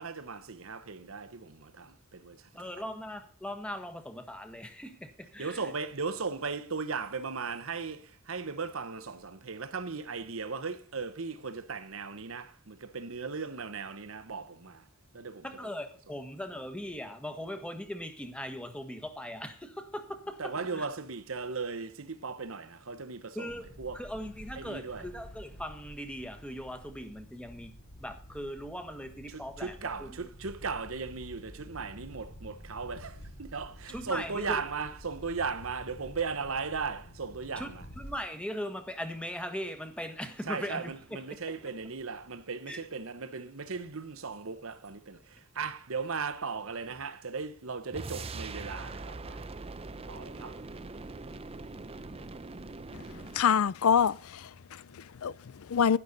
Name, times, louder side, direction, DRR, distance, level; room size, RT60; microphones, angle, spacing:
voice 1, 0.0-2.5 5.4-14.8 15.1-15.4 20.4-23.5 23.8-24.0 24.6-25.1 29.3-37.8 40.5-49.4 50.1-50.6, right 4 dB, 70° right, 1.0 m, -37 dB
voice 2, 2.5-5.7 15.4-20.8 23.3-30.3 33.9-34.6 37.6-41.2 41.5-41.6 42.7-42.8, equal, 5° left, 1.5 m, -40 dB
sound 1, 23.5-38.2, equal, 50° left, 2.6 m, -50 dB
sound 2, 47.9-53.5, right 3 dB, 30° right, 0.7 m, -42 dB
voice 3, 53.3-56.0, left 7 dB, 85° left, 0.5 m, -27 dB
11.5 x 11.5 x 4.1 m
head